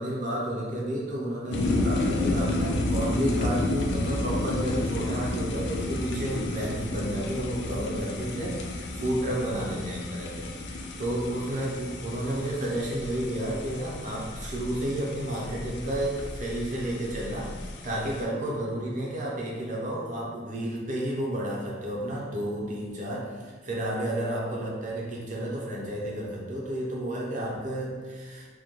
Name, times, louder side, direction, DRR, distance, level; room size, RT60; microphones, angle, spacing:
voice 1, 0.0-28.5, right 1 dB, 45° right, -4 dB, 0.5 m, -31 dB
sound 1, 1.5-18.2, left 2 dB, 65° left, 0.3 m, -31 dB
2.2 x 2.1 x 2.9 m, 1.4 s
head